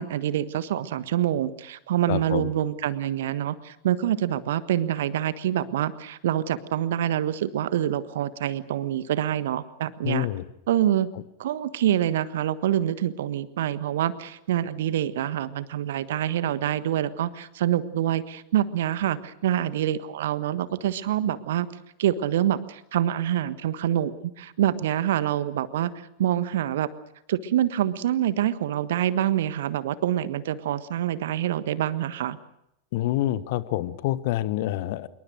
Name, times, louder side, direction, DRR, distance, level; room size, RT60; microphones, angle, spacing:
voice 1, 0.0-10.3 10.7-11.1 11.4-21.7 22.0-26.9 27.3-32.4, right 11 dB, 55° right, 15 dB, 1.4 m, -26 dB
voice 2, 2.1-2.5 10.0-10.4 32.9-35.1, left 15 dB, 50° left, 16 dB, 1.3 m, -27 dB
26.5 x 23.0 x 6.4 m, 0.80 s
figure-of-eight pair, 90°, 0 cm